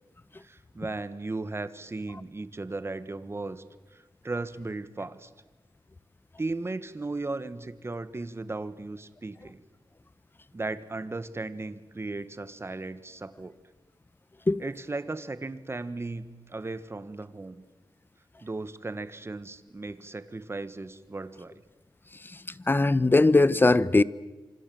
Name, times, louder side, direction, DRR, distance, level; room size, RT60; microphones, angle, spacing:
voice 1, 0.4-3.6 3.9-5.3 6.4-9.6 10.5-13.5 14.6-17.6 18.4-21.6, right 3 dB, 30° right, 1.5 m, -36 dB
voice 2, 22.7-24.0, left 2 dB, 25° left, 0.8 m, -20 dB
27.0 x 25.5 x 7.8 m
wide cardioid pair, 95°, 9 cm